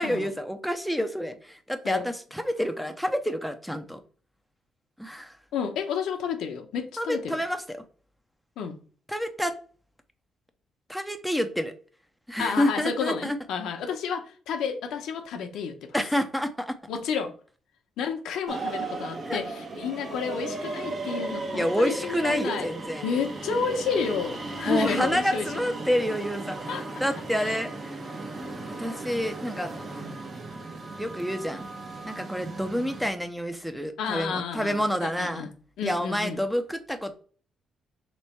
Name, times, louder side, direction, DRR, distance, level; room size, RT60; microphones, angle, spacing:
voice 1, 0.0-4.0 5.0-5.4 7.0-7.8 9.1-9.5 10.9-11.7 12.3-13.4 15.9-16.8 19.3-19.4 21.5-23.1 24.7-28.0 28.8-29.7 31.0-31.7 32.1-35.5 35.8-37.2, equal, ahead, 0.6 m, -28 dB
voice 2, 5.5-7.4 8.6-8.8 12.4-15.9 16.9-17.3 18.0-22.7 23.0-25.5 26.7-26.8 34.0-35.5 35.8-36.4, left 6 dB, 85° left, 0.7 m, -31 dB
sound 1, 18.5-33.1, right 2 dB, 45° right, 1.0 m, -36 dB
3.3 x 3.0 x 4.3 m
cardioid pair, 90°, 0 cm